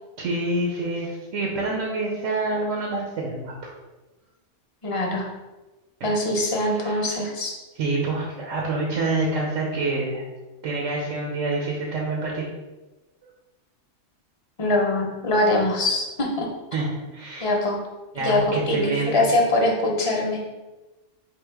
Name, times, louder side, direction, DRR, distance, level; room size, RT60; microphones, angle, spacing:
voice 1, 0.2-3.5 6.0-6.1 6.7-7.1 7.8-10.2 10.6-12.5 16.7-17.5 18.1-19.2, right 2 dB, 85° right, -2 dB, 1.1 m, -27 dB
voice 2, 4.8-5.3 6.0-7.5 14.6-16.5 17.4-17.8 18.1-20.4, left 2 dB, 30° left, 0 dB, 0.7 m, -23 dB
3.6 x 2.9 x 4.6 m, 1.1 s
omnidirectional pair, 1.3 m